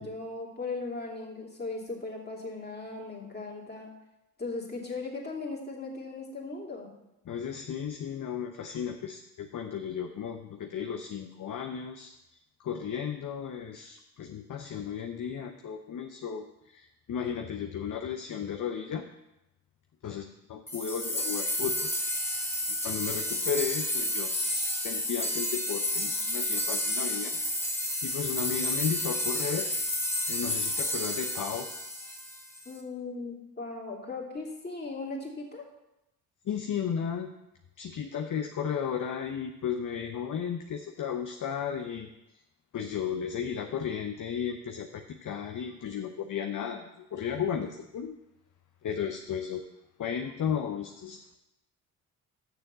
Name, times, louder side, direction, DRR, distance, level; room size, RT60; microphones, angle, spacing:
voice 1, 0.0-3.9 4.4-6.9 32.6-35.7, left 3 dB, 20° left, -2 dB, 2.8 m, -38 dB
voice 2, 7.2-12.2 12.6-19.1 20.0-21.9 22.2-27.4 28.0-29.7 30.3-31.7 36.4-37.3 37.8-42.1 42.7-48.2 48.8-49.6 50.0-51.4, left 7 dB, 45° left, 6 dB, 0.8 m, -34 dB
sound 1, 20.7-32.7, left 1 dB, 5° left, 1.6 m, -31 dB
6.7 x 6.6 x 6.7 m, 0.91 s
hypercardioid pair, 50°, 45 cm